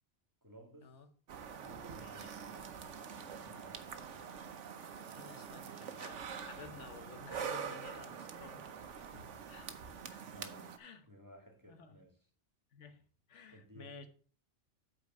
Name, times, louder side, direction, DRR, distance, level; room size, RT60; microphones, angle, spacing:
voice 1, 0.4-1.0 1.6-2.8 3.1-4.2 6.7-7.0 9.0-9.5 10.3-10.8 11.1-12.2 13.5-13.9, equal, 15° right, 1.9 m, -57 dB
sound 1, 1.3-10.8, right 7 dB, 85° right, 1.2 m, -45 dB
voice 2, 2.0-2.3 5.1-8.6 9.5-9.7 10.0-10.3 10.8-11.1 11.7-12.0 12.7-13.0 13.3-14.1, left 5 dB, 85° left, 1.3 m, -54 dB
8.3 x 4.6 x 6.5 m
omnidirectional pair, 1.2 m